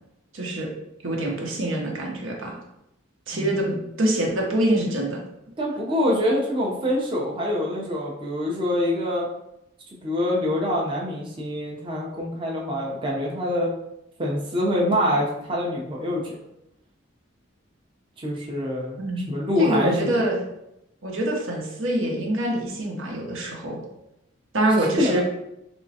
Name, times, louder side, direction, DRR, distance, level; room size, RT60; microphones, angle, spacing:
voice 1, 0.3-0.7 1.0-2.6 3.3-5.2 19.0-19.3 19.6-20.4 21.0-23.8 24.5-25.2, right 1 dB, 80° right, -1 dB, 0.8 m, -25 dB
voice 2, 3.3-3.8 5.6-9.3 10.0-13.7 14.2-16.4 18.2-19.0 19.3-20.2 24.8-25.2, left 1 dB, 25° right, -4 dB, 0.5 m, -25 dB
3.6 x 3.1 x 2.7 m, 0.84 s
head